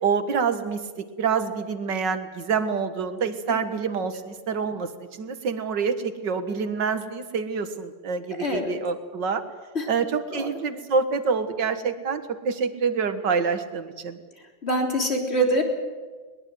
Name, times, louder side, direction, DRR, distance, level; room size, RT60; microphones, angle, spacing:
voice 1, 0.0-9.4 9.9-14.2, right 5 dB, 70° right, 9 dB, 2.2 m, -27 dB
voice 2, 8.4-8.7 9.7-9.9 10.3-10.5 14.6-15.6, right 1 dB, 35° left, 2 dB, 3.9 m, -24 dB
22.0 x 21.5 x 7.8 m, 1.4 s
omnidirectional pair, 2.0 m